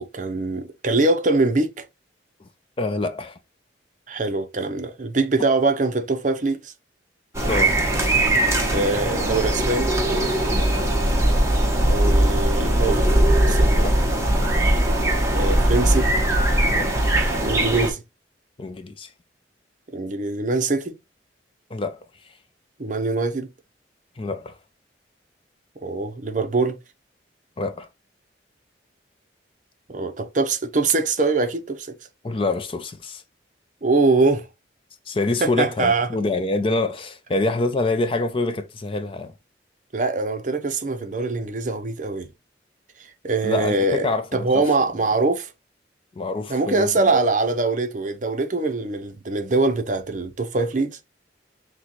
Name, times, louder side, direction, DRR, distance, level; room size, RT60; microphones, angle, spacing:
voice 1, 0.0-1.8 4.1-6.7 8.7-9.9 11.8-13.1 13.4-13.9 15.3-16.1 17.4-18.0 19.9-20.9 22.8-23.5 25.8-26.8 29.9-31.9 33.8-34.5 35.4-36.1 39.9-42.3 43.2-45.5 46.5-51.0, right 3 dB, 40° right, 0.6 m, -23 dB
voice 2, 2.8-3.4 7.5-7.7 10.5-10.7 13.8-14.0 16.7-16.9 18.6-19.1 21.7-22.0 24.2-24.6 27.6-27.9 32.2-33.2 35.1-39.3 43.4-44.5 46.2-47.2, left 2 dB, 30° left, 0.4 m, -26 dB
sound 1, 7.3-17.9, right 1 dB, 15° right, 0.9 m, -20 dB
6.2 x 2.2 x 3.0 m
head